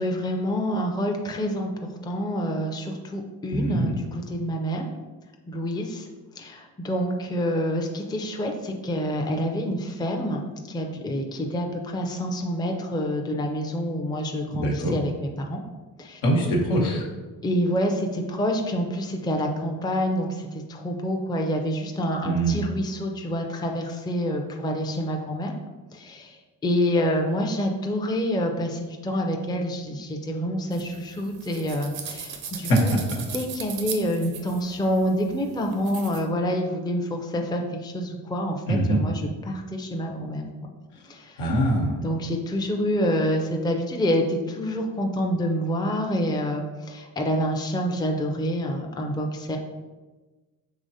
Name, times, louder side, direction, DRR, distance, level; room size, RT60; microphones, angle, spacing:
voice 1, 0.0-1.7 2.0-4.9 5.5-6.1 6.3-10.4 10.7-15.6 16.0-16.2 17.4-25.5 25.9-33.0 33.3-40.5 41.1-41.4 42.0-49.6, equal, 10° left, 2 dB, 0.6 m, -27 dB
voice 2, 3.5-4.0 14.5-14.9 16.2-17.0 22.2-22.6 32.7-33.0 38.7-39.0 41.4-42.0, right 1 dB, 70° left, -1 dB, 1.2 m, -23 dB
sound 1, 30.7-36.2, right 7 dB, 65° right, 0.8 m, -38 dB
5.0 x 3.2 x 2.7 m, 1.3 s
hypercardioid pair, 45°, 49 cm